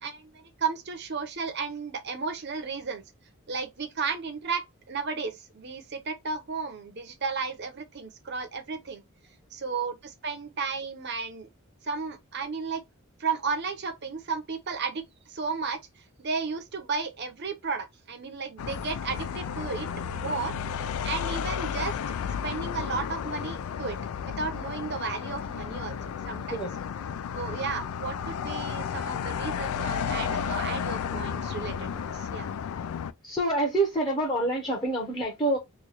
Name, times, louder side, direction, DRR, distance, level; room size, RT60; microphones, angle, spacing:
voice 1, 0.0-3.0 3.5-9.0 9.5-11.5 11.8-12.8 13.2-15.8 16.2-19.9 20.1-20.5 21.0-22.0 22.4-24.0 24.2-26.0 26.3-26.6 27.3-32.5, right 5 dB, 50° right, 0.7 m, -33 dB
sound 1, 18.6-33.1, left 7 dB, 75° left, 0.3 m, -33 dB
voice 2, 33.2-35.6, right 2 dB, 20° left, 0.8 m, -26 dB
3.0 x 2.3 x 3.9 m
head